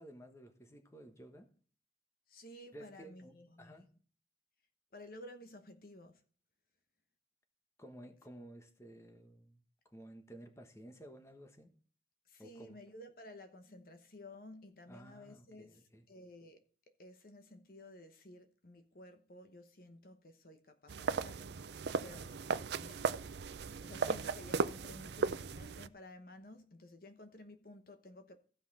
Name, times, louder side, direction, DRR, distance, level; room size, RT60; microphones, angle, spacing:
voice 1, 0.0-1.5 2.7-3.9 7.8-11.7 12.4-12.8 14.9-16.0, right 1 dB, 15° left, 1.2 m, -54 dB
voice 2, 2.3-3.9 4.9-6.2 12.3-21.6 22.0-23.0 23.8-28.4, left 1 dB, 50° left, 1.0 m, -54 dB
sound 1, 20.9-25.9, right 5 dB, 65° right, 0.5 m, -36 dB
15.0 x 5.6 x 4.2 m
head